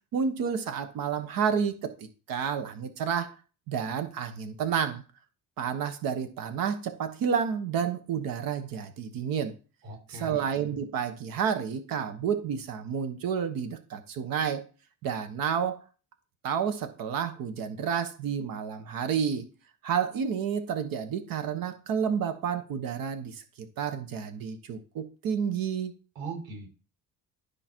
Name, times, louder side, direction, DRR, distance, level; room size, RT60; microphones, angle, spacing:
voice 1, 0.1-1.9 2.3-3.3 3.7-5.0 5.6-9.5 10.1-14.7 15.0-15.8 16.4-19.4 19.8-25.9, right 7 dB, 80° right, 1.3 m, -30 dB
voice 2, 9.8-10.5 26.1-26.7, right 4 dB, 55° right, 6.2 m, -39 dB
13.0 x 5.0 x 4.5 m
cardioid pair, 140°, 34 cm